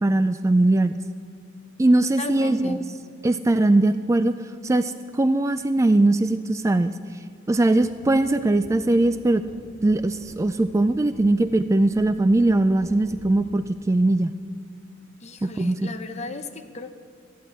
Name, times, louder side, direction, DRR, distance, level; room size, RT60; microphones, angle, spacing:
voice 1, 0.0-0.9 1.8-2.8 3.2-4.3 4.6-6.9 7.5-9.4 9.8-14.3 15.4-15.8, right 2 dB, 15° right, 11 dB, 0.3 m, -20 dB
voice 2, 2.2-2.8 15.2-16.9, left 3 dB, 35° left, 8 dB, 0.8 m, -35 dB
sound 1, 7.6-13.8, equal, 60° left, 2.6 m, -48 dB
14.0 x 9.4 x 8.4 m, 2.4 s
head